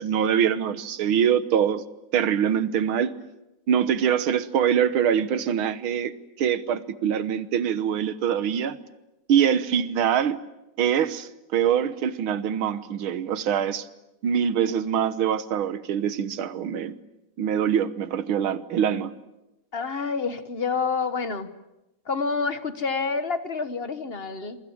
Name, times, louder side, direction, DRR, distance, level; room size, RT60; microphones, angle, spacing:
voice 1, 0.0-1.8 2.1-3.1 3.7-6.1 6.4-8.8 9.3-10.4 10.8-13.9 14.2-17.0 17.4-19.2, right 8 dB, 80° right, 13 dB, 2.0 m, -24 dB
voice 2, 19.7-21.5 22.0-24.6, left 4 dB, 35° left, 11 dB, 1.3 m, -28 dB
27.5 x 23.0 x 8.7 m, 0.96 s
omnidirectional pair, 2.3 m